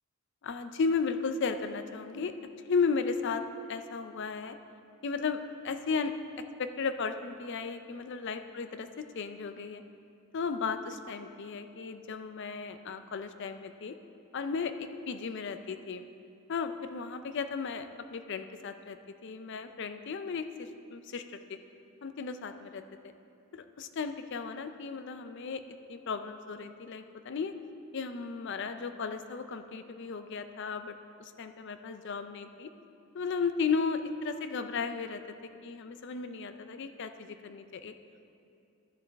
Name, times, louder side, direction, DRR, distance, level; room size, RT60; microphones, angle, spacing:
voice 1, 0.4-2.3 2.7-3.4 3.7-4.6 5.0-9.8 10.3-14.0 14.3-16.0 16.5-21.6 22.0-23.1 23.5-25.6 25.9-27.5 27.9-32.7 33.1-35.2 35.6-37.9, left 5 dB, 55° left, 9 dB, 0.4 m, -35 dB
13.0 x 7.0 x 3.4 m, 2.6 s
head